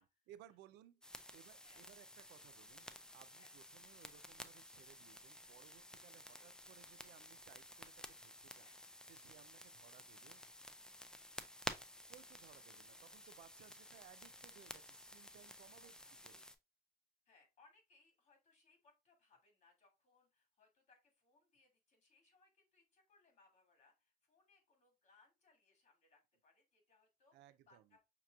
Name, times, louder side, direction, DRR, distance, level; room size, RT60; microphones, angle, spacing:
voice 1, 0.3-2.9 3.1-8.7 9.1-10.4 12.1-16.4 27.3-27.9, right 12 dB, 85° right, 0.4 m, -63 dB
sound 1, 1.0-16.6, left 1 dB, 5° left, 0.4 m, -53 dB
voice 2, 6.3-6.8 8.5-8.8 11.0-11.2 13.2-14.0 15.8-16.1 17.3-28.0, left 3 dB, 45° left, 2.2 m, -72 dB
5.8 x 2.9 x 2.3 m
cardioid pair, 110°, 17 cm